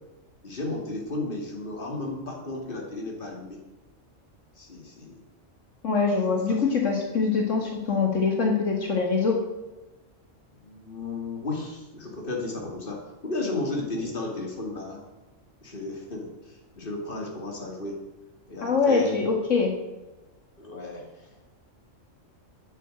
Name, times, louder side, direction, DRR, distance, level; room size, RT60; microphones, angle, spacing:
voice 1, 0.4-3.6 4.6-5.2 6.5-6.6 10.6-15.0 15.6-18.1 18.5-19.2 20.6-21.4, left 2 dB, 45° left, 0 dB, 2.6 m, -34 dB
voice 2, 5.8-9.4 18.6-19.7, left 4 dB, 75° left, 1 dB, 2.2 m, -23 dB
9.8 x 8.6 x 7.8 m, 1.1 s
omnidirectional pair, 1.3 m